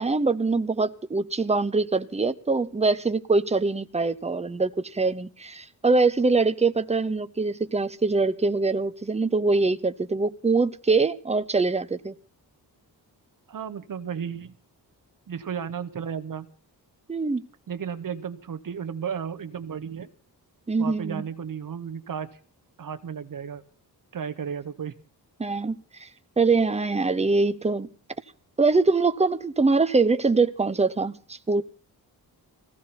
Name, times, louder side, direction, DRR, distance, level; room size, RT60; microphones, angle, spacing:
voice 1, 0.0-12.1 17.1-17.4 20.7-21.2 25.4-25.7 26.0-26.1 26.4-27.9 28.6-31.6, right 3 dB, 15° right, 0.9 m, -23 dB
voice 2, 13.5-14.5 15.3-16.5 17.7-20.1 20.8-22.3 22.8-23.6 24.1-24.9, right 7 dB, 55° right, 1.2 m, -33 dB
21.0 x 16.0 x 4.3 m
wide cardioid pair, 120°, 39 cm